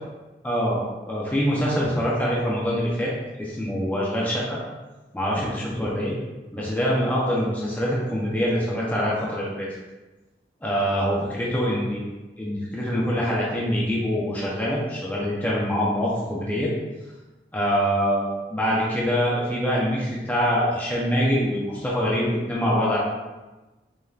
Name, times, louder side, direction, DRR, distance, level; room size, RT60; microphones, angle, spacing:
voice 1, 0.4-3.1 3.4-4.6 5.1-6.1 6.5-9.7 10.6-16.7 17.5-23.0, equal, 10° left, -6 dB, 0.6 m, -24 dB
5.0 x 2.9 x 2.4 m, 1.1 s
head